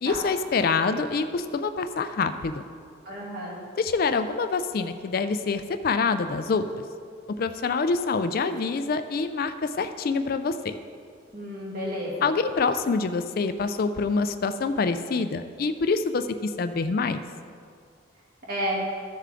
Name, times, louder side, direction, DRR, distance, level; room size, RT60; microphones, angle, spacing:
voice 1, 0.0-2.7 3.8-6.6 7.4-10.7 12.2-17.2, left 4 dB, 50° left, 10 dB, 0.4 m, -26 dB
voice 2, 3.0-3.6 11.3-12.3 18.5-18.8, equal, 50° right, -4 dB, 2.3 m, -31 dB
14.0 x 6.6 x 3.8 m, 2.2 s
head